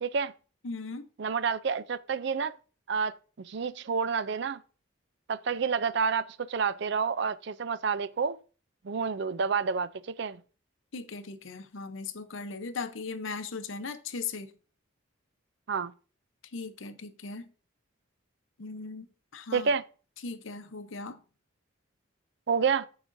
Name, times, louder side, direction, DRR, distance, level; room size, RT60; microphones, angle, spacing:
voice 1, 0.0-0.3 1.2-2.5 2.9-4.6 5.3-8.4 8.8-10.4 15.7-15.9 19.5-19.8 22.5-22.9, right 5 dB, 55° right, 0.4 m, -29 dB
voice 2, 0.6-1.1 10.9-14.5 16.5-17.5 18.6-19.1 19.3-19.7 20.2-21.2, left 4 dB, 75° left, 0.7 m, -38 dB
14.5 x 4.9 x 2.6 m
head